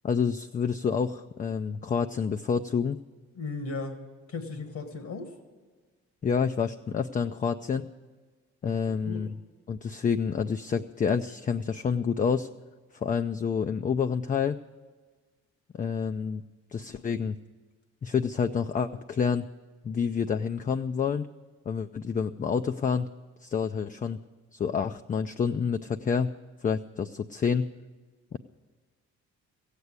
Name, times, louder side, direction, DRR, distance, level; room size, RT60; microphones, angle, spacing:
voice 1, 0.0-3.0 6.2-7.9 8.6-9.4 9.7-12.5 12.9-14.6 15.7-16.4 16.7-17.4 18.0-19.5 19.8-21.3 21.7-23.1 23.4-24.2 24.5-26.3 26.6-27.7 28.3-28.4, left 6 dB, 25° left, 8 dB, 0.4 m, -28 dB
voice 2, 3.3-4.0 4.3-5.3 8.6-9.3, left 3 dB, 70° left, 6 dB, 1.7 m, -36 dB
15.5 x 8.3 x 9.5 m, 1.4 s
cardioid pair, 90°, 30 cm